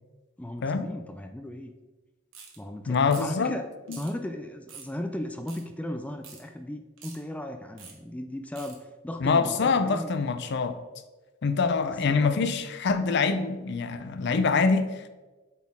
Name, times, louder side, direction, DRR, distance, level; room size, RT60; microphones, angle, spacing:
voice 1, 0.4-1.7 2.6-3.6 3.9-10.1 11.9-12.5, left 1 dB, 5° left, 6 dB, 0.3 m, -36 dB
sound 1, 2.3-2.6 3.1-3.4 3.9-4.1 4.7-4.9 5.5-5.6 6.2-6.4 7.0-7.2 7.8-7.9 8.6-8.8, right 6 dB, 90° right, 1.4 m, -45 dB
voice 2, 2.9-3.6 3.9-4.0 9.2-10.8 11.4-15.1, left 4 dB, 60° left, 10 dB, 0.5 m, -25 dB
8.0 x 4.2 x 3.6 m, 1.2 s
head